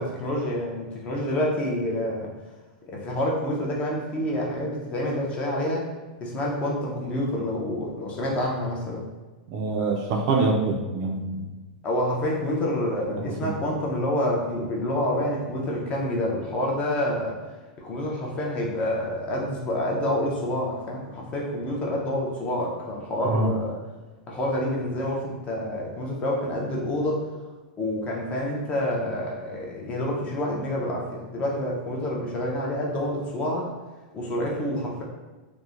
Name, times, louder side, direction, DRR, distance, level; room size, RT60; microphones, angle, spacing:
voice 1, 0.0-2.3 2.8-5.9 6.2-9.0 11.8-17.4 17.8-23.8 24.3-27.3 27.8-33.7 34.1-35.0, left 1 dB, 25° left, -2 dB, 0.5 m, -28 dB
voice 2, 9.5-11.4 13.4-13.5 23.3-23.5, right 3 dB, 45° right, 2 dB, 0.4 m, -25 dB
2.9 x 2.1 x 2.4 m, 1.3 s
supercardioid pair, 145°, 5 cm